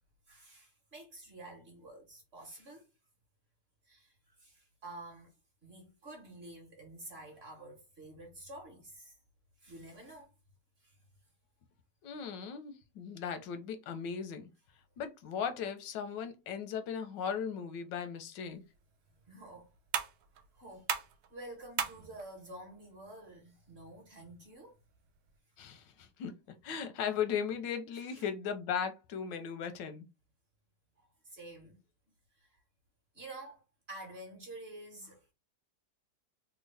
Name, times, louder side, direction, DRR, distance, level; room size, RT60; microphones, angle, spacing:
voice 1, 0.3-2.9 3.9-5.3 5.6-9.2 9.6-10.3 10.8-10.9 19.2-19.7 20.5-21.0 21.3-24.7 27.9-28.3 31.0-31.8 32.4-32.6 33.1-35.3, right 2 dB, 45° right, 1.1 m, -50 dB
voice 2, 12.0-14.5 15.0-18.6 25.6-26.3 26.6-30.1, left 7 dB, 90° left, 1.4 m, -37 dB
sound 1, 18.4-25.4, right 9 dB, 75° right, 1.1 m, -42 dB
3.6 x 2.2 x 3.2 m
omnidirectional pair, 1.9 m